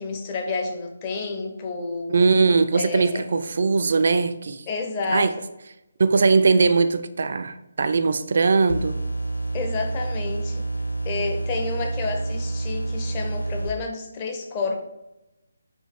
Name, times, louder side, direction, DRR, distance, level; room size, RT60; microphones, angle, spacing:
voice 1, 0.0-2.2 2.7-3.4 4.7-5.4 9.5-10.7 11.0-14.8, left 3 dB, 25° left, 2 dB, 0.6 m, -30 dB
voice 2, 2.1-4.6 5.1-5.3 6.0-9.0, right 4 dB, 55° right, 11 dB, 0.3 m, -20 dB
sound 1, 8.7-13.7, right 2 dB, 85° left, 0.3 m, -28 dB
4.4 x 2.7 x 3.6 m, 0.95 s
figure-of-eight pair, 155°, 0 cm